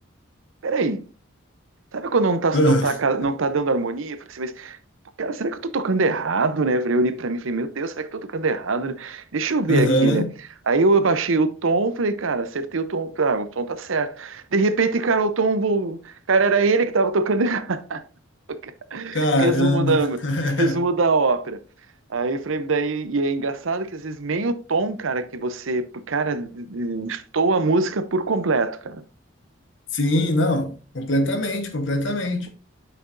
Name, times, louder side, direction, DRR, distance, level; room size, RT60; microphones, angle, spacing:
voice 1, 0.6-1.0 1.9-4.8 5.2-10.3 10.7-18.0 18.5-20.2 20.6-21.6 22.1-29.0, right 3 dB, 80° right, 0.7 m, -23 dB
voice 2, 2.5-2.9 3.2-3.3 9.7-10.3 19.1-20.8 29.9-32.5, left 1 dB, 65° left, 1.3 m, -22 dB
8.3 x 5.9 x 2.6 m
head